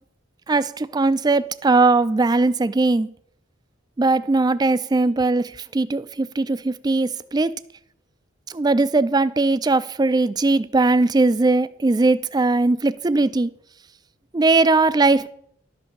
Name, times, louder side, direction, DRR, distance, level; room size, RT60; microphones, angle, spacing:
voice 1, 0.5-3.1 4.0-7.5 8.5-13.5 14.3-15.3, right 3 dB, 20° right, 0.4 m, -19 dB
11.5 x 5.4 x 6.5 m
head